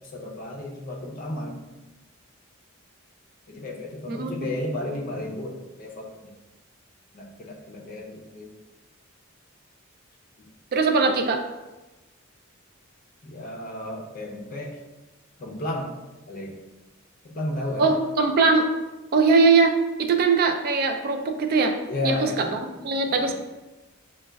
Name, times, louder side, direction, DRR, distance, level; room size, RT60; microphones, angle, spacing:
voice 1, 0.1-1.7 3.5-6.3 7.1-8.5 13.2-14.8 15.4-15.9 16.3-16.6 17.2-17.9 21.9-22.4 23.1-23.4, left 1 dB, 40° left, -1 dB, 0.6 m, -33 dB
voice 2, 4.1-4.6 10.7-11.4 17.8-18.7 19.1-21.7 22.0-23.4, right 4 dB, 45° right, 5 dB, 0.3 m, -21 dB
4.9 x 2.2 x 2.2 m, 1.1 s
head